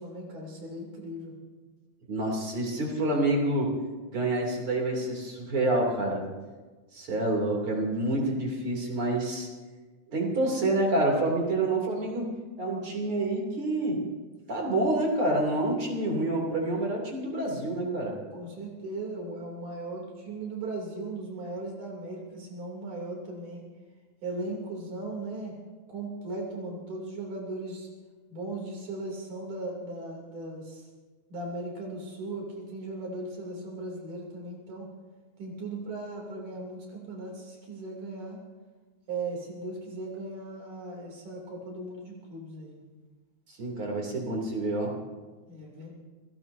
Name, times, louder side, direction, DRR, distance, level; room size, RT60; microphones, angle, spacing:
voice 1, 0.0-1.3 18.3-23.7 24.2-25.5 25.9-27.9 28.3-30.9 31.3-34.9 35.4-38.4 39.1-42.8 45.5-45.9, right 2 dB, 80° right, -1 dB, 4.4 m, -37 dB
voice 2, 2.1-3.8 4.1-6.2 6.9-9.5 10.1-12.3 12.6-14.0 14.5-18.2 43.6-44.9, right 2 dB, 45° right, -1 dB, 3.6 m, -27 dB
29.0 x 17.0 x 2.7 m, 1.3 s
omnidirectional pair, 3.5 m